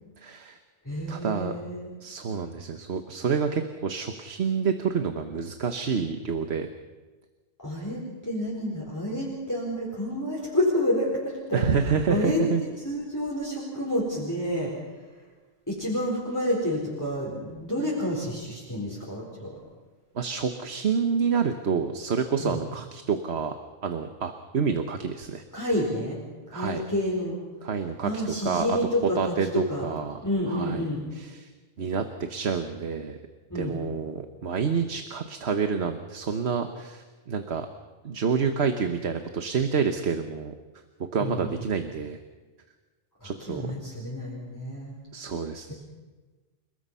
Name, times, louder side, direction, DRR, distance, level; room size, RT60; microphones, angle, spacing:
voice 1, 0.2-0.6 1.1-1.5 2.0-6.7 11.5-12.6 20.1-23.6 23.8-25.4 26.5-26.8 27.6-28.8 29.1-30.8 31.1-31.5 31.8-33.2 33.5-37.7 38.0-40.5 41.1-42.2 43.2-43.7 45.1-45.7, right 6 dB, 80° right, 7 dB, 1.4 m, -28 dB
voice 2, 0.8-1.9 7.6-11.6 12.1-14.7 15.7-19.6 22.4-22.6 25.5-26.2 26.5-27.4 28.0-29.9 30.2-31.0 33.5-33.8 41.2-41.5 43.2-45.0, left 1 dB, 15° left, -5 dB, 4.6 m, -29 dB
29.5 x 20.0 x 5.6 m, 1.3 s
omnidirectional pair, 1.1 m